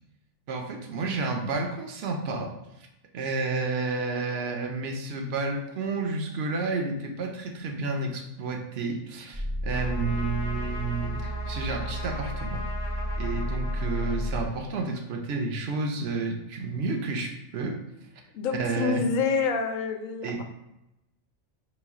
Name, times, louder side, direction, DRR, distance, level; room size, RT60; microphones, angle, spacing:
voice 1, 0.5-2.5 3.1-12.6 13.2-17.8 18.5-19.0 20.2-20.4, right 3 dB, 60° right, 3 dB, 0.9 m, -31 dB
sound 1, 9.3-14.6, right 1 dB, 15° right, 0.4 m, -32 dB
Trumpet, 9.7-15.0, left 3 dB, 50° left, 0.5 m, -41 dB
voice 2, 18.3-20.3, left 5 dB, 85° left, 6 dB, 1.0 m, -27 dB
3.2 x 3.1 x 4.7 m, 0.91 s
omnidirectional pair, 1.3 m